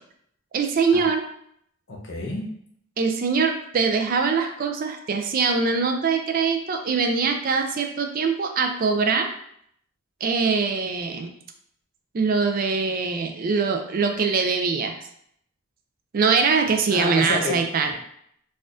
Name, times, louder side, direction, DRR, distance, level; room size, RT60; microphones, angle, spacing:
voice 1, 0.5-1.3 3.0-9.3 10.2-11.3 12.1-15.1 16.1-17.9, right 5 dB, 40° right, 5 dB, 0.3 m, -23 dB
voice 2, 1.9-2.5 16.9-17.9, left 2 dB, 55° left, -1 dB, 0.8 m, -29 dB
4.1 x 2.4 x 2.5 m, 0.69 s
head